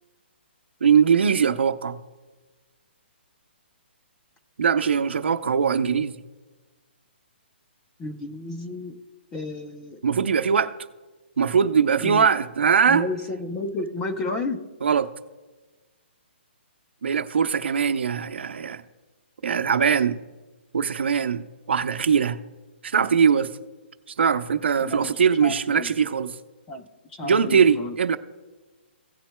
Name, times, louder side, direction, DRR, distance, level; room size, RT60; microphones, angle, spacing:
voice 1, 0.8-2.0 4.6-6.2 10.0-10.7 11.4-13.1 14.8-15.1 17.0-18.8 19.4-20.2 20.7-22.4 22.8-23.5 24.2-26.4 27.2-28.2, right 6 dB, 70° right, 0.8 m, -21 dB
voice 2, 8.0-9.0 9.3-10.0 12.0-12.3 12.9-14.6 24.8-25.1 25.4-25.9 26.7-26.8 27.1-28.0, left 2 dB, 10° left, 0.6 m, -31 dB
17.0 x 7.5 x 2.2 m
hypercardioid pair, 175°, 6 cm